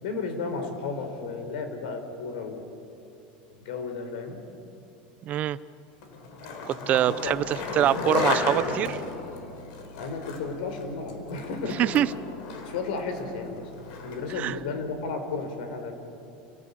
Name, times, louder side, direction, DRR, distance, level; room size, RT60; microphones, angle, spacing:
voice 1, 0.0-2.7 3.5-4.4 7.0-7.3 9.9-11.9 12.6-16.0, left 4 dB, 90° left, 6 dB, 4.3 m, -33 dB
voice 2, 5.2-5.6 6.7-9.0 11.8-12.1 14.4-14.6, right 12 dB, 35° right, 16 dB, 0.6 m, -24 dB
Skateboard, 6.0-14.4, left 4 dB, 65° left, 4.2 m, -34 dB
sound 1, 7.2-14.4, left 3 dB, 10° right, 2.2 m, -50 dB
29.0 x 18.0 x 8.5 m, 2.7 s
supercardioid pair, 155°, 4 cm